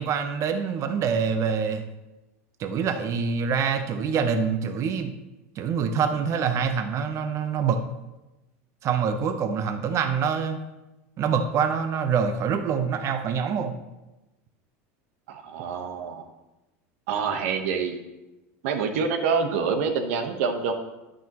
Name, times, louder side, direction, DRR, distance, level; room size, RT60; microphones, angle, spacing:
voice 1, 0.0-1.8 2.6-5.1 5.6-7.8 8.8-10.6 11.2-13.8, right 6 dB, 40° right, 8 dB, 0.9 m, -25 dB
voice 2, 15.3-16.2 17.1-18.0 18.6-20.7, right 5 dB, 75° right, 6 dB, 1.2 m, -26 dB
10.5 x 9.0 x 3.1 m, 1.0 s
supercardioid pair, 115°, 7 cm